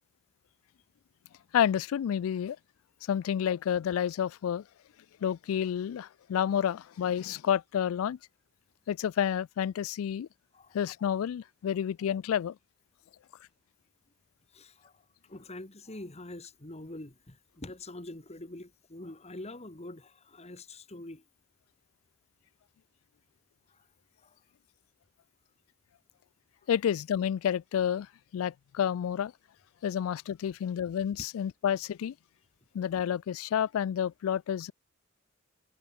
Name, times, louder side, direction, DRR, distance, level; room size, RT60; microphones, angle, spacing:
voice 1, 1.5-2.6 3.1-4.6 5.2-8.2 8.9-10.3 10.7-12.6 26.7-29.3 29.8-32.1 32.7-34.7, left 9 dB, 90° left, 0.3 m, -30 dB
voice 2, 14.5-15.0 15.3-21.2 23.7-23.8 24.2-24.4, left 1 dB, 30° left, 2.0 m, -45 dB
head